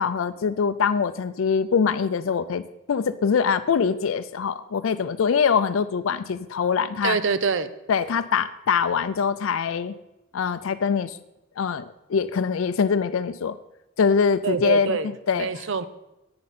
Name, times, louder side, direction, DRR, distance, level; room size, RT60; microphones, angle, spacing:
voice 1, 0.0-2.6 2.9-7.2 7.9-9.9 10.3-11.2 11.6-13.6 14.0-15.5, left 6 dB, 75° left, 11 dB, 0.4 m, -23 dB
voice 2, 7.0-7.7 14.4-15.1 15.4-15.9, right 5 dB, 65° right, 13 dB, 0.6 m, -25 dB
10.5 x 8.7 x 4.1 m, 0.90 s
head